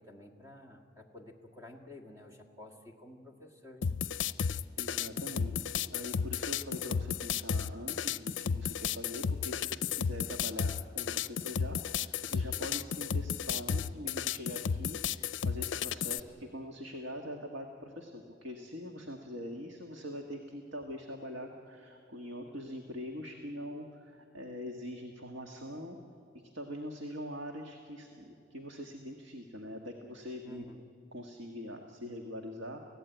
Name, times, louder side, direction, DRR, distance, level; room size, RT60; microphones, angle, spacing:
voice 1, 0.0-4.0 30.4-30.8, left 1 dB, 20° right, 2 dB, 1.7 m, -51 dB
sound 1, 3.8-16.2, left 7 dB, 80° left, 0.5 m, -33 dB
voice 2, 4.8-5.6 5.9-26.0 26.3-30.7 31.1-32.8, equal, 85° right, 3 dB, 1.6 m, -43 dB
29.5 x 16.0 x 9.1 m, 2.6 s
head